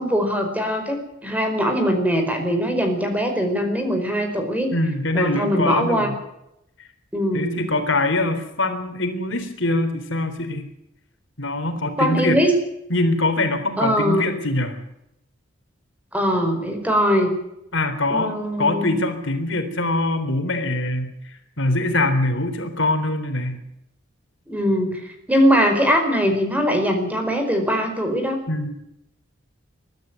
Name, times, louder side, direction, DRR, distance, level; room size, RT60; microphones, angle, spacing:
voice 1, 0.0-4.7 5.1-6.1 7.1-7.6 12.0-12.5 13.8-14.3 16.1-17.3 18.1-19.0 24.5-28.4, equal, 10° right, 5 dB, 4.7 m, -21 dB
voice 2, 4.7-6.2 7.3-10.7 11.4-12.4 12.9-14.8 17.7-23.6 28.5-28.7, left 2 dB, 70° left, 7 dB, 3.7 m, -23 dB
23.5 x 13.0 x 9.4 m, 0.83 s
head